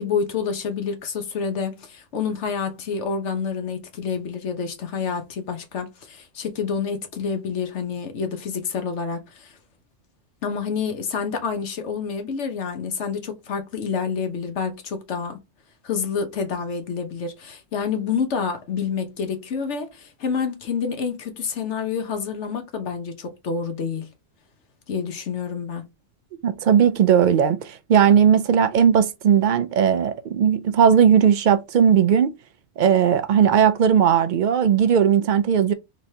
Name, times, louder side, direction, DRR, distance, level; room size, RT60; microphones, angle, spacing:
voice 1, 0.0-9.5 10.4-15.4 15.8-24.1 24.9-25.8, left 6 dB, 70° left, 1.2 m, -28 dB
voice 2, 26.4-32.3 32.8-35.7, right 8 dB, 60° right, 0.5 m, -17 dB
4.0 x 3.2 x 2.7 m
omnidirectional pair, 1.2 m